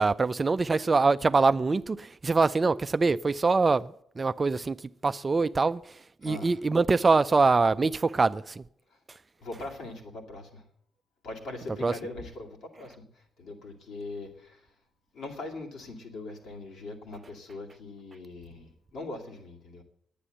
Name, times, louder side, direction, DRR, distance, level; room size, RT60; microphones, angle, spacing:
voice 1, 0.0-4.8 5.0-8.6 11.8-11.9, right 4 dB, 35° right, 0.4 m, -24 dB
voice 2, 6.2-6.6 8.9-9.0 9.4-10.6 11.2-14.7 15.1-19.8, left 2 dB, 65° left, 2.4 m, -41 dB
10.0 x 9.8 x 8.0 m
hypercardioid pair, 40°, 0 cm